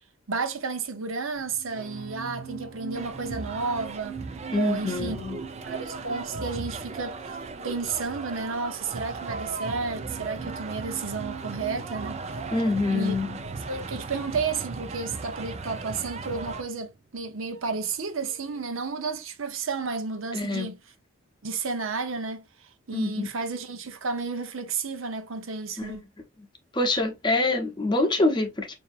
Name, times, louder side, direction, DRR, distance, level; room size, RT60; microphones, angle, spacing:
voice 1, 0.3-4.2 4.6-5.2 5.6-12.4 12.9-13.1 13.7-20.8 21.4-26.0, right 4 dB, 75° right, 0.8 m, -32 dB
sound 1, 1.4-18.0 18.3-18.6, right 6 dB, 45° right, 1.0 m, -44 dB
sound 2, 2.9-16.6, right 4 dB, 30° right, 0.4 m, -37 dB
voice 2, 4.5-5.4 12.5-13.4 20.3-20.7 22.9-23.3 25.8-26.0 26.7-28.7, left 2 dB, 20° left, 0.8 m, -25 dB
5.6 x 2.7 x 2.4 m
head